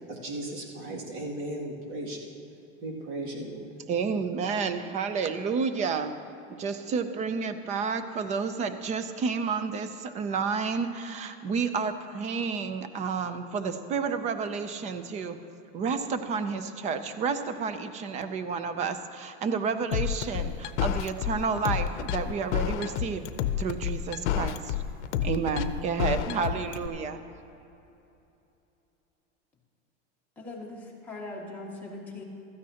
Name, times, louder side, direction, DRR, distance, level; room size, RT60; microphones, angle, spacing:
voice 1, 0.1-2.2 2.8-3.7, right 1 dB, 60° right, -2 dB, 2.5 m, -36 dB
voice 2, 3.9-6.2 6.5-15.4 15.7-23.3 23.6-24.7 25.2-27.2, right 5 dB, 20° right, 10 dB, 0.4 m, -30 dB
sound 1, 19.9-26.9, left 10 dB, 75° left, 0.7 m, -29 dB
voice 3, 30.4-32.2, left 2 dB, 5° left, -5 dB, 1.8 m, -40 dB
16.0 x 13.5 x 2.9 m, 2.8 s
supercardioid pair, 155°, 35 cm